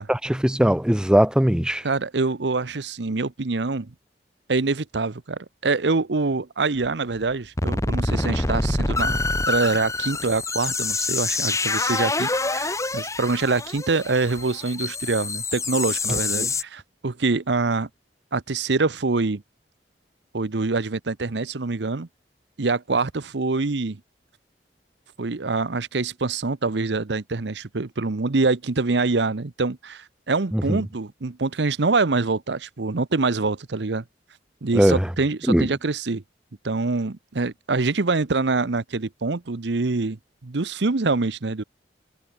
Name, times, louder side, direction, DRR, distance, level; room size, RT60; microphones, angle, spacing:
voice 1, 0.0-1.9 16.4-16.5 30.5-30.8 34.7-35.1 35.5-35.7, equal, 5° right, 0.5 m, -20 dB
voice 2, 1.8-3.9 4.5-9.2 9.5-17.9 18.3-19.4 20.3-22.1 22.6-24.0 25.2-34.0 34.6-36.2 36.6-41.6, right 3 dB, 75° right, 0.9 m, -25 dB
sound 1, 6.8-6.9 7.3-7.4 7.6-16.6, left 3 dB, 15° left, 2.1 m, -26 dB
head